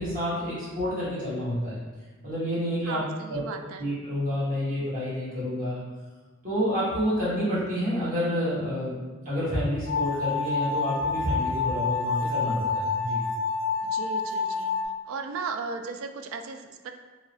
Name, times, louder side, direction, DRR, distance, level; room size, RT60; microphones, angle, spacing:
voice 1, 0.0-1.8 2.2-3.0 3.3-3.4 3.8-5.8 6.4-13.2, equal, 40° right, -10 dB, 1.4 m, -29 dB
voice 2, 2.8-3.9 13.8-14.7 15.0-16.9, right 5 dB, 75° right, 6 dB, 0.3 m, -36 dB
sound 1, 9.9-14.8, left 4 dB, 55° left, 0.4 m, -28 dB
3.0 x 2.9 x 2.7 m, 1.3 s
head